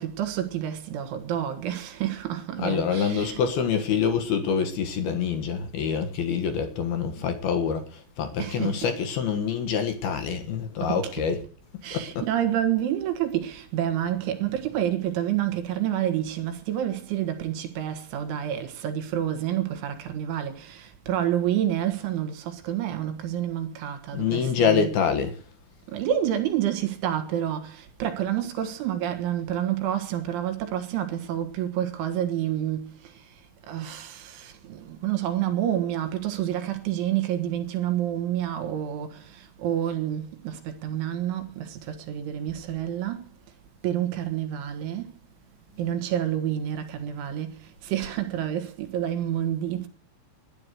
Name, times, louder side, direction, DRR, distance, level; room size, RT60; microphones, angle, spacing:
voice 1, 0.0-3.4 8.4-8.9 10.8-11.1 11.8-24.9 25.9-43.3 43.8-45.1 45.8-49.9, right 11 dB, 75° right, 3.8 m, -29 dB
voice 2, 2.6-11.4 11.9-12.3 24.1-25.4, left 6 dB, 70° left, 2.7 m, -26 dB
12.5 x 11.0 x 8.0 m
omnidirectional pair, 5.7 m